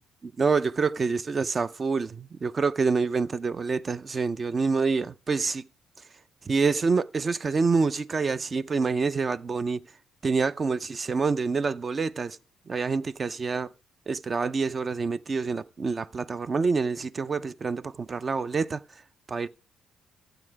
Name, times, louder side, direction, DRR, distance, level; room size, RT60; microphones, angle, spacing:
voice 1, 0.4-5.6 6.5-9.8 10.2-12.4 12.7-13.7 14.1-18.8 19.3-19.5, right 4 dB, 35° right, 0.5 m, -27 dB
12.0 x 7.9 x 4.7 m
cardioid pair, 90°, 0 cm